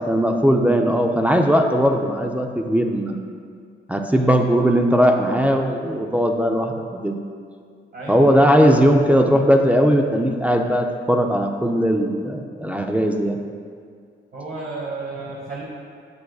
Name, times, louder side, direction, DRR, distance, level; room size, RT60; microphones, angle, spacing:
voice 1, 0.1-3.2 3.9-7.2 8.1-13.4, equal, 5° right, 3 dB, 0.5 m, -18 dB
voice 2, 7.9-8.5 14.3-15.6, right 3 dB, 50° right, -6 dB, 1.3 m, -32 dB
9.4 x 6.3 x 2.3 m, 2.1 s
cardioid pair, 90°, 20 cm